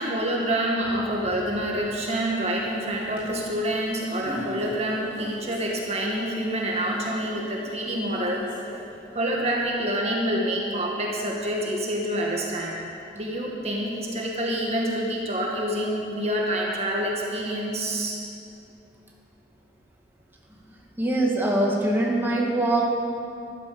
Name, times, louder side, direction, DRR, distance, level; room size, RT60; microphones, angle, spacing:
voice 1, 0.0-8.7 9.1-12.8 13.2-18.2, right 1 dB, 35° right, -1 dB, 1.7 m, -27 dB
sound 1, 0.8-9.7, equal, 30° left, 3.9 m, -43 dB
voice 2, 21.0-22.8, right 1 dB, 10° right, -3 dB, 1.9 m, -23 dB
14.0 x 12.0 x 7.0 m, 2.5 s
head